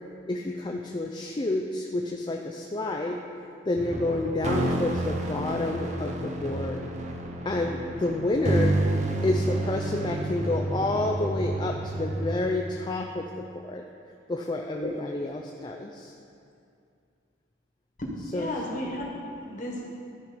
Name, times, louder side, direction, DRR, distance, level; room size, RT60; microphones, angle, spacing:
voice 1, 0.3-3.2 3.6-6.8 7.5-8.8 9.2-13.8 14.3-16.1 18.3-18.5, left 2 dB, 25° left, 1 dB, 0.4 m, -29 dB
sound 1, 3.8-12.4, right 1 dB, 35° right, 0.7 m, -29 dB
voice 2, 18.0-19.9, left 1 dB, 40° left, -2 dB, 1.5 m, -34 dB
13.0 x 5.0 x 5.1 m, 2.5 s
head